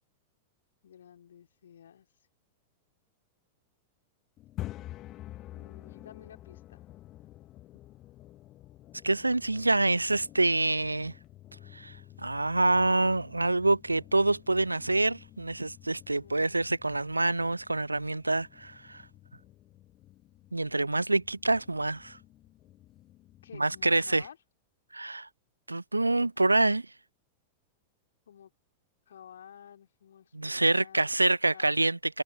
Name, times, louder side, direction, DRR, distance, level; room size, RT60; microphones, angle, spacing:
voice 1, 0.8-2.1 5.5-6.8 16.2-16.6 23.4-24.4 28.3-28.5 29.1-31.7, left 9 dB, 65° left, 4.0 m, -52 dB
sound 1, 4.4-24.3, left 15 dB, 35° left, 1.5 m, -49 dB
voice 2, 9.0-11.1 11.7-11.9 12.2-19.0 20.5-22.2 23.6-24.2 24.9-25.3 25.7-26.8 30.3-32.2, right 2 dB, 85° right, 0.8 m, -26 dB
figure-of-eight pair, 90°, 0 cm